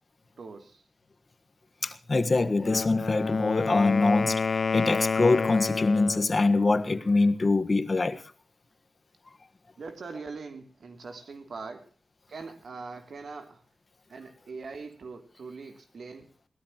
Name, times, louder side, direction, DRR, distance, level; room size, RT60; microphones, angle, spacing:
voice 1, 0.4-0.8 9.8-11.9 12.3-13.6 14.1-16.3, right 4 dB, 75° right, 2.9 m, -42 dB
voice 2, 1.8-8.2, left 3 dB, 40° left, 1.4 m, -24 dB
Wind instrument woodwind instrument, 2.5-6.3, left 5 dB, 55° left, 0.6 m, -29 dB
22.0 x 18.0 x 3.0 m
wide cardioid pair, 145°, 0 cm